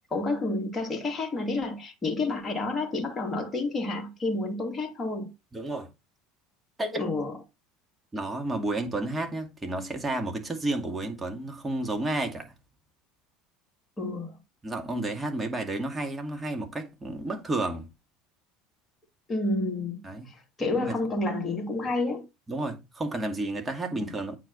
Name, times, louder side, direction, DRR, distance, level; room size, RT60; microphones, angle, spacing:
voice 1, 0.1-5.3 7.0-7.4 14.0-14.4 19.3-22.2 23.9-24.1, left 2 dB, 20° left, 2.8 m, -30 dB
voice 2, 5.5-5.9 6.8-7.0 8.1-12.5 14.6-17.9 20.0-20.3 20.7-21.0 22.5-24.4, right 2 dB, 15° right, 2.3 m, -31 dB
8.8 x 5.0 x 4.1 m
figure-of-eight pair, 70°, 0 cm